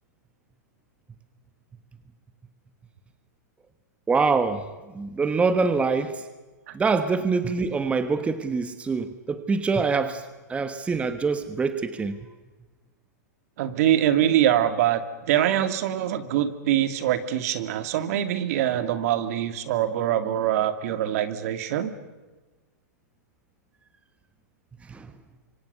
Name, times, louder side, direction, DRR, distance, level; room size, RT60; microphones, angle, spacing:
voice 1, 4.1-4.7 4.9-6.2 6.7-12.3 24.9-25.1, right 4 dB, 15° right, 10 dB, 1.3 m, -25 dB
voice 2, 13.6-21.9, right 11 dB, 60° right, 10 dB, 2.2 m, -24 dB
26.0 x 25.0 x 6.8 m, 1.2 s
hypercardioid pair, 130°, 9 cm